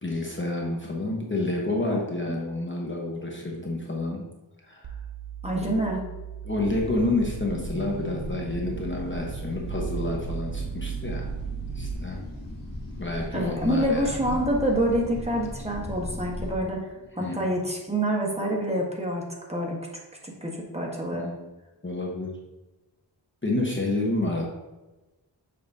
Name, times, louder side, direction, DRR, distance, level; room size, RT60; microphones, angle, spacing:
voice 1, 0.0-4.2 4.6-4.9 6.4-11.3 11.7-12.2 13.0-14.4 17.2-17.3 21.1-21.5 21.8-22.3 23.4-24.4, left 2 dB, 25° left, -2 dB, 1.0 m, -29 dB
sound 1, 4.8-11.9, right 10 dB, 55° right, 0.6 m, -37 dB
voice 2, 5.4-6.0 13.3-16.9 17.1-19.2 19.5-19.8 20.4-21.3, right 1 dB, 15° right, -2 dB, 1.3 m, -27 dB
sound 2, 6.6-16.6, left 1 dB, 45° left, 1.6 m, -37 dB
7.0 x 5.0 x 2.7 m, 1.1 s
wide cardioid pair, 65°, 45 cm